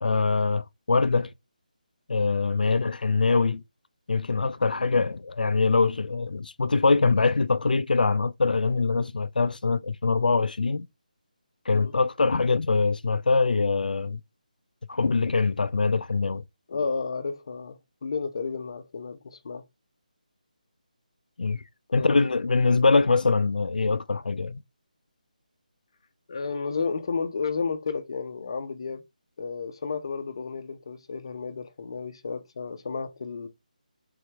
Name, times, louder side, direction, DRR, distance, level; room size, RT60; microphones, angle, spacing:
voice 1, 0.0-1.3 2.1-3.6 4.1-10.9 11.7-14.2 14.9-16.4 21.4-21.6 21.9-24.6, left 4 dB, 85° left, 0.4 m, -23 dB
voice 2, 4.6-5.0 11.7-11.9 16.7-19.7 22.0-22.2 26.3-29.0 29.4-33.5, left 5 dB, 35° left, 0.7 m, -32 dB
3.9 x 3.1 x 3.3 m
figure-of-eight pair, 175°, 5 cm